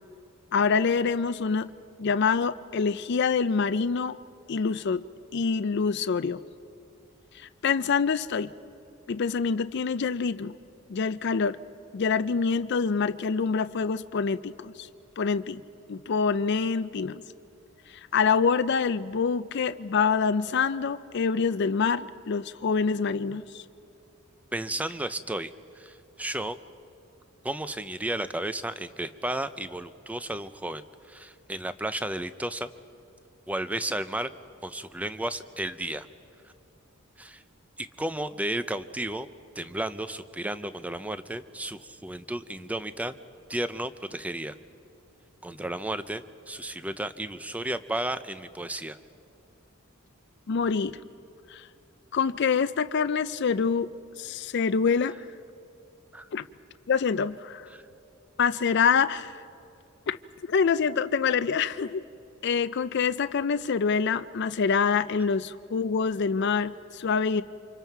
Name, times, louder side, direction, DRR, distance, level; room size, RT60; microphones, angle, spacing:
voice 1, 0.5-1.7 2.0-4.2 4.5-5.0 5.3-6.4 7.3-8.5 9.1-10.6 10.9-11.6 11.9-14.9 15.2-15.6 15.9-17.2 17.9-23.6 50.5-51.0 51.5-51.7 52.1-55.2 56.3-56.4 56.9-57.7 58.4-59.4 60.1-60.2 60.5-62.0 62.4-67.4, left 5 dB, 55° left, 12 dB, 0.4 m, -26 dB
voice 2, 24.5-26.6 27.4-32.7 33.5-34.3 34.6-36.1 37.2-37.4 37.8-39.3 39.6-43.1 43.5-44.5 45.4-49.0 56.1-56.3 57.7-57.8, right 1 dB, 5° right, 12 dB, 0.5 m, -33 dB
28.5 x 26.0 x 4.6 m, 2.7 s
head